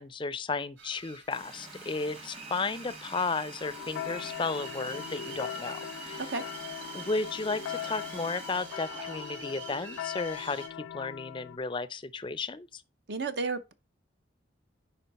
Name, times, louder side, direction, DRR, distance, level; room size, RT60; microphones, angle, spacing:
voice 1, 0.0-6.2 6.9-10.7 10.9-12.8, left 4 dB, 25° left, 0.4 m, -34 dB
sound 1, 0.8-10.7, right 5 dB, 75° right, 2.2 m, -47 dB
Water tap faucet, 1.3-9.8, right 2 dB, 30° right, 1.2 m, -47 dB
sound 2, 3.6-11.6, left 10 dB, 90° left, 0.4 m, -40 dB
voice 2, 13.1-13.7, right 4 dB, 60° right, 0.7 m, -32 dB
10.0 x 3.6 x 4.1 m
head